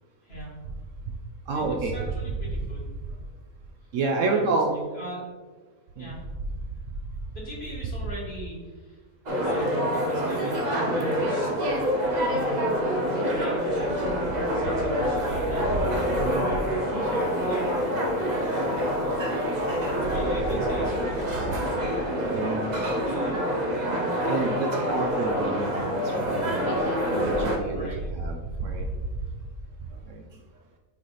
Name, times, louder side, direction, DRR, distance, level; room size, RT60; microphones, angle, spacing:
voice 1, 0.2-0.6 1.5-2.9 4.3-4.4 4.7-5.2 6.0-6.2 7.3-9.0 9.4-11.7 12.3-12.8 13.3-14.2 14.5-15.7 17.0-17.7 20.1-21.6 27.7-28.0, equal, 40° left, -5 dB, 2.2 m, -40 dB
voice 2, 1.5-2.0 3.9-4.8 6.0-6.1 16.2-16.5 22.3-22.7 24.3-26.9 27.1-27.9 28.1-28.8, right 3 dB, 65° right, 2 dB, 0.9 m, -28 dB
sound 1, 9.3-27.6, equal, 35° right, 0.8 m, -26 dB
8.5 x 3.3 x 4.0 m, 1.4 s
omnidirectional pair, 1.6 m